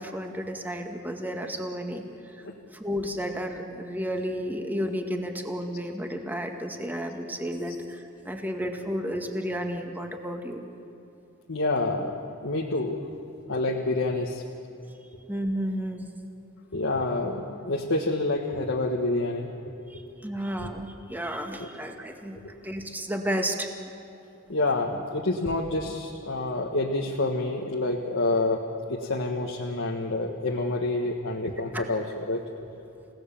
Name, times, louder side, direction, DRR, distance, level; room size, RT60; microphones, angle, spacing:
voice 1, 0.0-2.0 2.7-10.7 15.3-16.1 19.9-23.7 31.7-31.8, equal, 10° right, 3 dB, 1.9 m, -32 dB
voice 2, 11.5-13.0 13.5-14.4 16.7-19.5 20.6-20.7 21.6-21.7 24.5-28.6 28.9-32.4, left 2 dB, 80° left, -1 dB, 1.7 m, -28 dB
29.5 x 17.5 x 7.2 m, 2.9 s
head